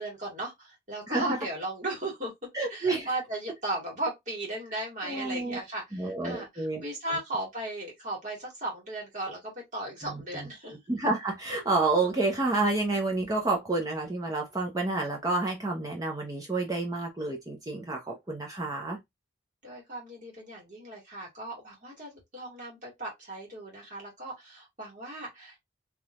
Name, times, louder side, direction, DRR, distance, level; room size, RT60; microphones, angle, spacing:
voice 1, 0.0-2.3 2.7-10.8 19.6-25.6, right 2 dB, 40° right, 2.2 m, -36 dB
voice 2, 2.5-3.1 5.0-5.6 5.9-6.8 7.1-7.2 10.0-10.2 10.9-19.0, right 3 dB, 20° right, 0.7 m, -29 dB
3.8 x 3.0 x 2.5 m
head